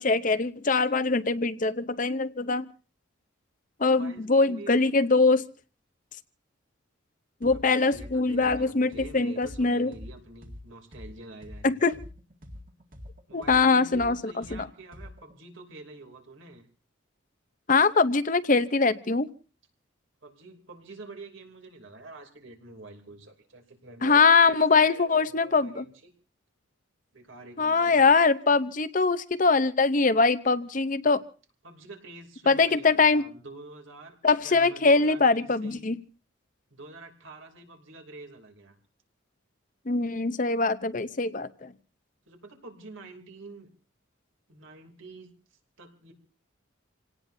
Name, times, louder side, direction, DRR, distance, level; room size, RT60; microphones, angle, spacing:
voice 1, 0.0-2.7 3.8-5.4 7.4-9.9 11.6-11.9 13.3-14.2 14.5-14.7 17.7-19.3 24.0-25.8 27.6-31.2 32.5-33.3 34.2-36.0 39.9-41.7, left 4 dB, 40° left, 13 dB, 0.7 m, -22 dB
voice 2, 3.8-4.8 7.5-11.8 13.3-16.7 20.2-25.9 27.1-28.0 31.6-34.2 34.4-35.9 36.7-38.8 42.3-43.7 44.5-46.1, right 2 dB, 75° right, 4 dB, 3.0 m, -47 dB
sound 1, 7.4-7.6 7.9-11.6 11.9-15.3, left 1 dB, 45° right, 2.1 m, -44 dB
27.5 x 18.0 x 2.7 m, 0.37 s
head